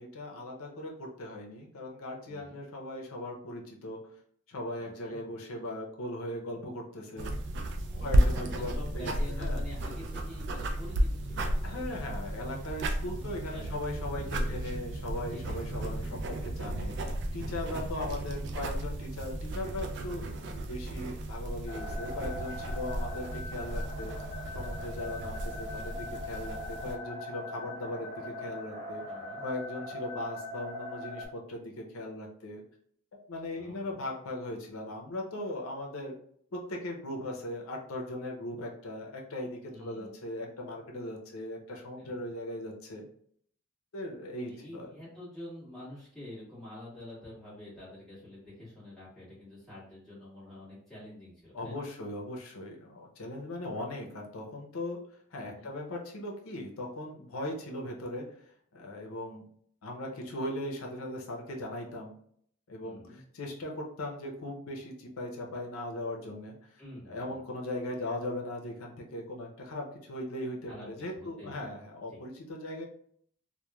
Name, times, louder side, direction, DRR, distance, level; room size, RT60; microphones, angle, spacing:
voice 1, 0.0-4.0 4.5-7.3 8.0-9.1 9.4-9.6 11.6-16.9 17.3-24.1 24.5-29.0 29.4-32.6 33.1-36.1 36.5-43.1 43.9-44.9 51.5-55.0 55.3-58.3 58.7-59.5 59.8-62.2 62.7-66.8 67.1-72.9, left 1 dB, 90° left, 1 dB, 0.6 m, -39 dB
voice 2, 2.3-2.6 4.8-5.2 7.9-11.9 13.0-13.7 14.1-14.8 15.3-16.2 17.4-17.8 29.1-29.4 33.6-33.9 39.7-40.1 42.0-42.3 44.5-51.8 55.4-55.7 62.8-63.2 66.8-67.4 70.7-70.9 71.1-71.5 72.1-72.2, left 1 dB, ahead, -11 dB, 1.4 m, -47 dB
sound 1, 7.2-27.0, right 1 dB, 55° right, 0.3 m, -33 dB
sound 2, 21.7-31.3, left 2 dB, 35° left, 0.9 m, -41 dB
2.9 x 2.1 x 2.2 m, 0.63 s
head